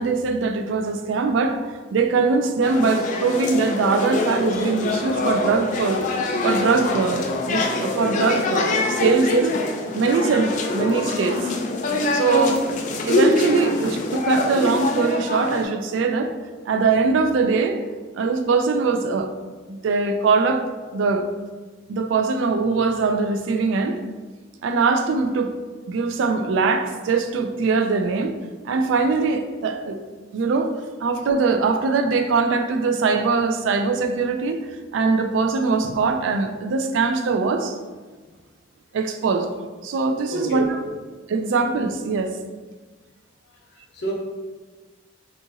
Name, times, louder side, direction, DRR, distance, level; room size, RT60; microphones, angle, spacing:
voice 1, 0.0-6.0 6.4-9.6 9.9-11.5 12.1-12.7 13.1-16.3 16.7-17.8 18.1-19.3 19.7-20.6 20.9-21.3 21.9-24.0 24.6-25.5 25.9-28.3 28.6-30.0 30.3-30.7 31.0-34.6 34.9-37.8 38.9-39.5 39.8-40.7 41.3-42.3, right 4 dB, 80° right, 6 dB, 0.3 m, -22 dB
sound 1, 2.6-15.6, left 2 dB, 40° left, 0.3 m, -24 dB
voice 2, 40.3-40.9 43.4-44.1, equal, 60° left, -1 dB, 0.7 m, -31 dB
2.8 x 2.4 x 3.9 m, 1.4 s
head